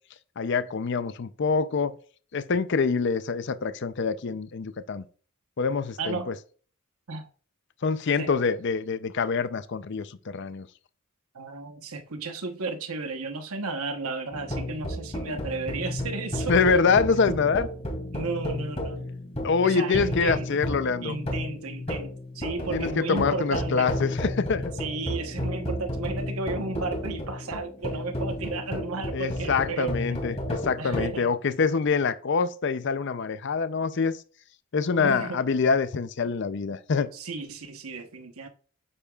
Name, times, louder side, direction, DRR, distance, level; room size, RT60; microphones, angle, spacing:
voice 1, 0.4-2.0 2.3-5.0 5.6-6.3 7.8-10.7 16.5-17.7 19.4-21.2 22.7-24.7 29.1-34.2 34.7-37.1, left 5 dB, 55° left, 0.5 m, -25 dB
voice 2, 6.0-6.4 7.1-7.3 8.2-8.3 11.3-16.6 17.3-17.4 18.1-19.0 19.6-20.5 21.0-24.0 24.8-30.0 30.8-31.3 35.0-35.4 37.1-38.5, right 3 dB, 90° right, 1.0 m, -33 dB
sound 1, 14.3-31.1, left 1 dB, 30° left, 2.5 m, -32 dB
8.8 x 8.2 x 2.4 m
head